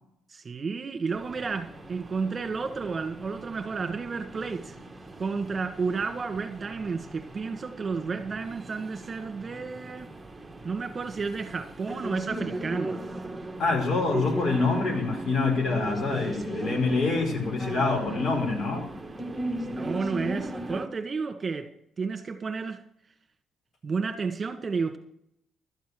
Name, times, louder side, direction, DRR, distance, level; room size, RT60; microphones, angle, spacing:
voice 1, 0.3-4.8 5.2-10.1 10.6-13.0 19.7-21.7 22.0-22.8 23.8-25.0, right 4 dB, 40° right, 2.0 m, -31 dB
sound 1, 1.1-20.9, right 1 dB, 15° right, 1.7 m, -38 dB
voice 2, 13.6-18.9, left 3 dB, 60° left, 4.6 m, -26 dB
13.0 x 8.2 x 6.4 m
cardioid pair, 75°, 0 cm